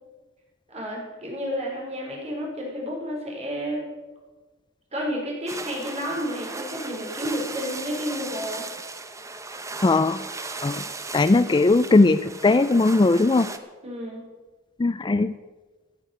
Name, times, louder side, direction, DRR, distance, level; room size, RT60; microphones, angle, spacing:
voice 1, 0.7-3.8 4.9-8.6 13.8-14.2, equal, 35° right, -2 dB, 5.1 m, -31 dB
sound 1, 5.5-13.6, right 3 dB, 15° right, 0.9 m, -37 dB
voice 2, 9.8-10.2 10.6-10.8 11.1-13.5 14.8-15.3, left 3 dB, 25° left, 13 dB, 0.4 m, -19 dB
16.0 x 8.2 x 8.1 m, 1.3 s
head